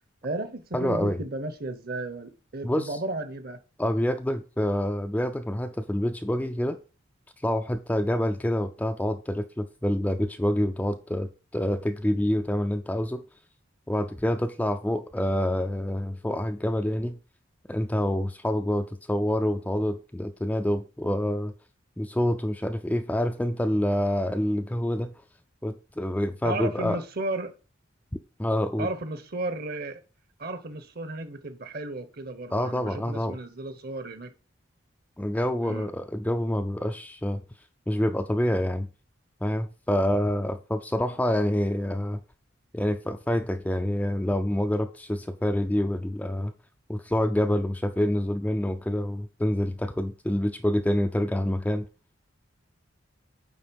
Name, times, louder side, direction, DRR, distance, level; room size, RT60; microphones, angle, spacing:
voice 1, 0.2-3.6 26.4-27.5 28.8-30.0 30.4-34.3 35.6-35.9, right 2 dB, 45° right, 1.0 m, -34 dB
voice 2, 0.7-1.2 2.6-3.0 3.8-6.8 7.4-13.2 13.9-17.2 17.7-21.5 22.0-25.1 25.6-27.0 28.4-28.9 32.5-33.4 35.2-37.4 37.9-38.9 39.4-42.2 42.7-46.5 46.9-51.9, left 1 dB, 5° left, 0.4 m, -27 dB
9.3 x 3.8 x 5.2 m
head